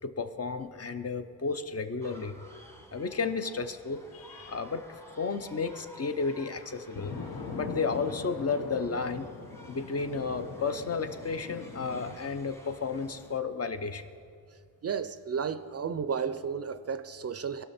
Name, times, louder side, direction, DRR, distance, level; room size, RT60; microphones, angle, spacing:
voice 1, 0.0-2.3 2.9-7.1 7.5-9.3 9.7-14.0, left 4 dB, 40° left, 9 dB, 0.6 m, -33 dB
sound 1, 2.0-13.4, equal, 5° left, 1.0 m, -54 dB
sound 2, 6.9-12.2, left 4 dB, 85° left, 1.0 m, -41 dB
voice 2, 14.8-17.6, right 6 dB, 45° right, 12 dB, 0.4 m, -33 dB
17.5 x 5.9 x 4.1 m, 2.3 s
cardioid pair, 75°, 37 cm